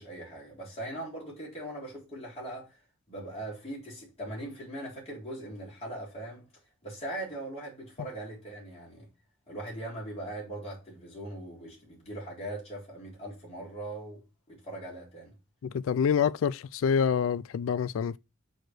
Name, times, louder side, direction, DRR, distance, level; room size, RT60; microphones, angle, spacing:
voice 1, 0.0-2.8 3.1-6.5 6.8-9.1 9.5-15.3, right 1 dB, 30° left, 3.9 m, -40 dB
voice 2, 15.6-18.2, left 7 dB, 75° left, 0.3 m, -27 dB
6.4 x 3.9 x 6.3 m
head